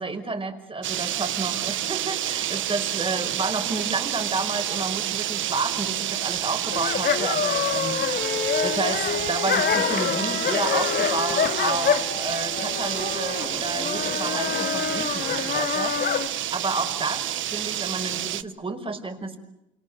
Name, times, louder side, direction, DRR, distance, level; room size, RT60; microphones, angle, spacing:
voice 1, 0.0-8.3 8.6-16.0 16.3-19.4, right 3 dB, 25° right, 6 dB, 5.4 m, -31 dB
sound 1, 0.8-18.4, right 12 dB, 75° right, 1.0 m, -29 dB
sound 2, 6.7-16.3, left 7 dB, 55° left, 2.1 m, -26 dB
28.5 x 27.0 x 6.8 m, 0.88 s
cardioid pair, 90°, 20 cm